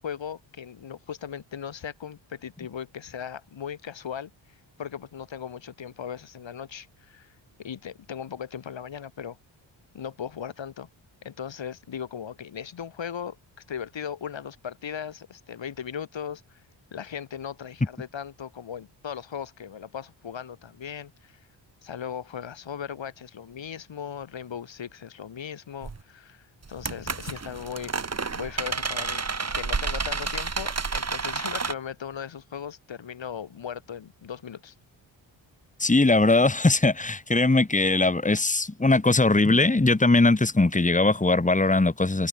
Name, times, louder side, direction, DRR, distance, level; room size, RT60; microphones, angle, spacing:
voice 1, 0.0-7.3 7.6-9.4 9.9-10.9 11.2-13.4 13.7-16.6 16.9-21.4 21.8-29.2 29.5-34.7, left 8 dB, 65° left, 6.2 m, -38 dB
sound 1, 25.8-26.0 26.7-31.7, right 4 dB, 30° right, 2.6 m, -30 dB
voice 2, 35.8-42.3, left 2 dB, 15° left, 2.5 m, -20 dB
cardioid pair, 70°, 48 cm